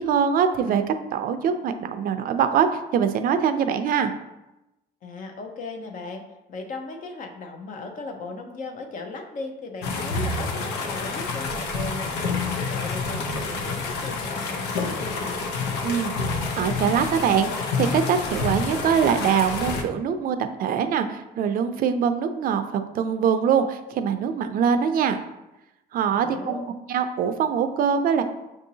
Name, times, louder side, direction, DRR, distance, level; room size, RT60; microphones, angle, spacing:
voice 1, 0.0-2.7 2.9-4.1 15.8-16.1 16.6-25.2 25.9-26.6 26.9-28.2, right 7 dB, 60° right, 8 dB, 0.4 m, -23 dB
voice 2, 5.0-6.2 6.5-15.3 26.1-26.7, left 3 dB, 50° left, 4 dB, 0.7 m, -37 dB
sound 1, 9.8-19.8, left 4 dB, 85° left, 0.6 m, -28 dB
6.1 x 2.7 x 2.8 m, 0.95 s
cardioid pair, 110°, 17 cm